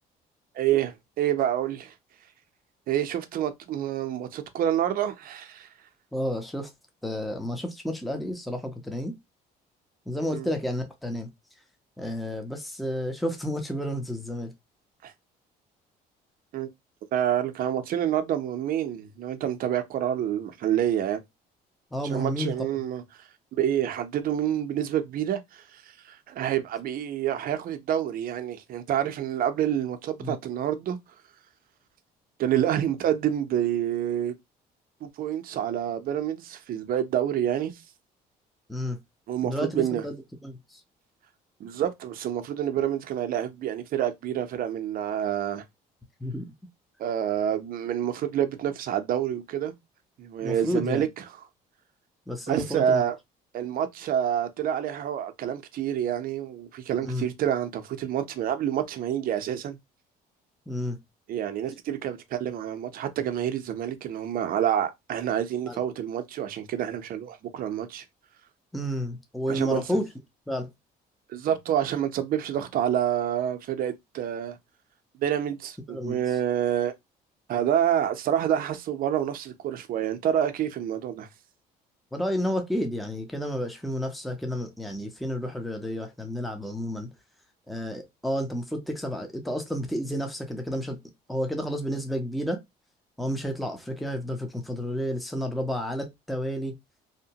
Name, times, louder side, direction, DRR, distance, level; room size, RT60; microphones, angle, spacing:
voice 1, 0.5-1.9 2.9-5.7 10.3-10.5 15.0-15.1 16.5-16.7 17.1-21.2 22.0-23.2 23.5-31.0 32.4-34.4 35.0-37.8 39.3-40.0 41.6-45.6 47.0-49.7 50.2-51.2 52.5-53.2 53.5-59.8 61.3-68.0 69.5-69.8 71.3-74.6 75.2-76.9 77.5-81.3, right 10 dB, 60° right, 0.5 m, -28 dB
voice 2, 6.1-6.7 7.0-9.1 10.1-11.3 12.0-14.5 21.9-22.5 30.2-30.4 38.7-39.0 39.4-40.1 40.4-40.8 46.2-46.5 50.4-51.1 52.3-53.0 57.0-57.3 60.7-61.0 65.7-65.8 68.7-70.0 70.5-70.7 75.9-76.2 82.1-87.1 87.7-91.0 91.3-92.6 93.2-96.7, equal, ahead, 0.6 m, -31 dB
2.8 x 2.1 x 2.7 m
cardioid pair, 110°, 17 cm